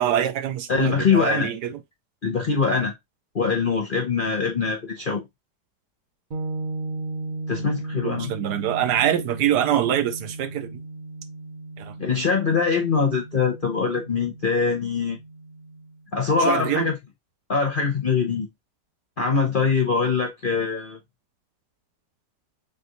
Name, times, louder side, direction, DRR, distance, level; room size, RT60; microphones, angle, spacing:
voice 1, 0.0-1.8 8.0-10.8 11.8-11.9 16.4-16.9, right 10 dB, 70° right, 1.1 m, -24 dB
voice 2, 0.7-1.5 2.2-2.9 3.3-5.2 7.5-8.3 12.0-15.2 16.1-16.9 17.5-18.5 19.2-21.0, left 5 dB, 45° left, 0.6 m, -23 dB
sound 1, 6.3-16.0, right 2 dB, 40° right, 0.7 m, -36 dB
3.7 x 3.4 x 3.7 m
omnidirectional pair, 1.9 m